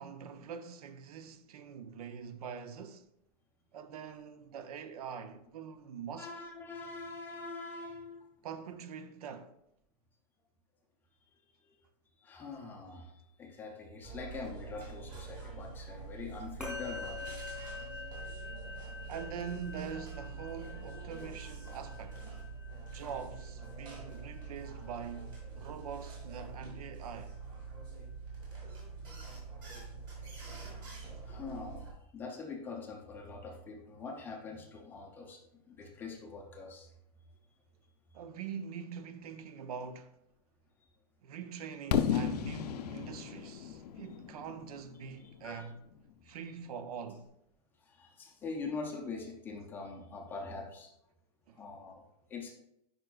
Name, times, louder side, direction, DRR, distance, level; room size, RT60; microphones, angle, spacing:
voice 1, 0.0-3.1 3.7-6.3 8.4-9.5 19.1-22.3 22.9-27.3 38.1-40.1 41.2-45.8 46.2-47.3 51.5-51.6, right 7 dB, 70° right, 0.6 m, -44 dB
voice 2, 6.2-8.3 11.6-11.8 12.2-17.3 28.5-28.7 30.7-30.8 31.2-31.9 32.1-36.9 45.2-45.7 47.8-50.9 51.5-52.5, left 4 dB, 10° left, 0.5 m, -44 dB
sound 1, 14.0-31.9, right 4 dB, 25° right, 1.8 m, -45 dB
Musical instrument, 16.6-26.1, left 4 dB, 5° right, 1.1 m, -47 dB
Fireworks, 41.9-45.8, left 8 dB, 85° left, 0.6 m, -34 dB
9.0 x 5.1 x 2.3 m
supercardioid pair, 175°, 20 cm